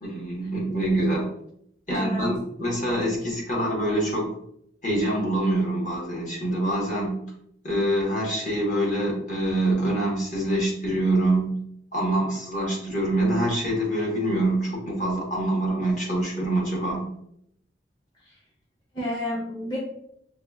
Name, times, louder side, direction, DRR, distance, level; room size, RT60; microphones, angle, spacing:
voice 1, 0.0-1.3 1.9-4.3 4.8-7.2 7.6-11.5 11.9-17.0, right 1 dB, 45° left, -3 dB, 1.2 m, -25 dB
voice 2, 1.9-2.3 18.2-18.4 18.9-19.8, left 1 dB, 25° left, -7 dB, 0.9 m, -31 dB
5.7 x 2.3 x 2.3 m, 0.73 s
head